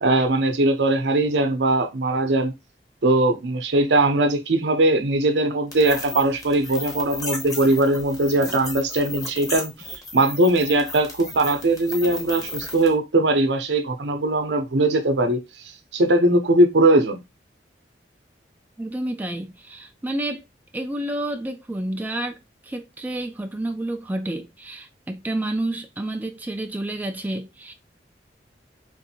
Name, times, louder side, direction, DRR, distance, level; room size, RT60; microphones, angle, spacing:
voice 1, 0.0-2.5 3.0-9.7 10.1-15.4 15.9-17.2, right 2 dB, 80° right, 0.7 m, -20 dB
sound 1, 5.7-12.9, left 2 dB, 20° left, 0.9 m, -35 dB
voice 2, 18.8-20.4 20.7-27.7, right 1 dB, 10° right, 0.3 m, -30 dB
3.7 x 2.6 x 2.7 m
head